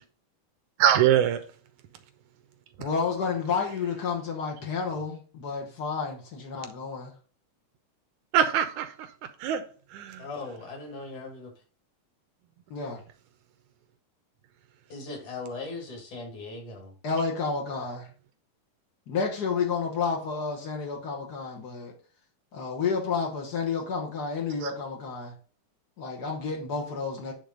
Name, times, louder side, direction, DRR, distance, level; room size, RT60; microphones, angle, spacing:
voice 1, 0.8-1.4 8.3-9.6 9.9-10.2 24.6-24.7, right 10 dB, 80° right, 1.9 m, -23 dB
voice 2, 2.8-7.1 12.7-13.0 17.0-18.1 19.1-21.9 22.5-25.3 26.0-27.3, left 5 dB, 90° left, 0.8 m, -30 dB
voice 3, 10.2-11.5 14.9-16.9, left 3 dB, 65° left, 3.7 m, -39 dB
9.9 x 3.5 x 5.2 m
omnidirectional pair, 3.7 m